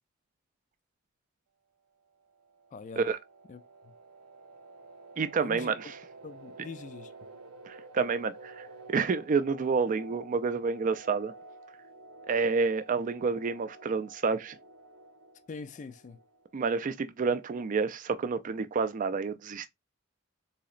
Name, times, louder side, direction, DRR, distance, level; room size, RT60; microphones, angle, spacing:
sound 1, 2.2-16.8, right 3 dB, 85° right, 0.6 m, -51 dB
voice 1, 2.7-3.0 3.5-3.9 5.4-5.7 6.2-7.1 15.5-16.2, left 4 dB, 35° left, 0.3 m, -43 dB
voice 2, 5.2-5.9 7.7-11.3 12.3-14.6 16.5-19.7, right 5 dB, 40° right, 0.4 m, -29 dB
4.1 x 2.8 x 2.4 m
head